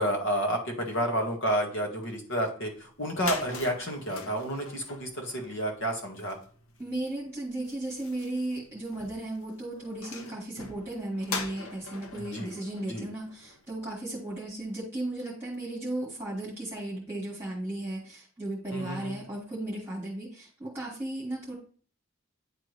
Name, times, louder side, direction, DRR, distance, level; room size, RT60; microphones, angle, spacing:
voice 1, 0.0-6.4 12.2-12.5 12.9-13.1 18.7-19.1, equal, 60° left, 2 dB, 1.8 m, -30 dB
sound 1, 2.8-2.9 3.0-13.8, left 4 dB, 80° left, 1.0 m, -42 dB
voice 2, 6.8-21.5, right 1 dB, 10° right, -5 dB, 1.8 m, -35 dB
9.9 x 3.6 x 3.2 m, 0.43 s
head